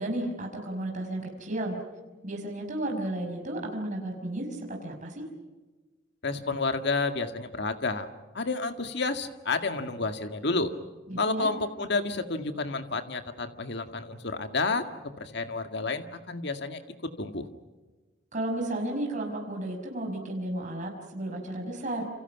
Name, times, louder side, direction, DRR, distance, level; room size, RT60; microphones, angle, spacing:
voice 1, 0.0-1.8 2.2-5.3 11.1-11.5 18.3-22.0, right 1 dB, 40° right, 2 dB, 5.6 m, -33 dB
voice 2, 6.2-8.1 8.3-10.7 11.2-14.9 15.2-17.5, left 3 dB, 60° left, 7 dB, 2.0 m, -30 dB
29.0 x 28.0 x 6.0 m, 1.2 s
head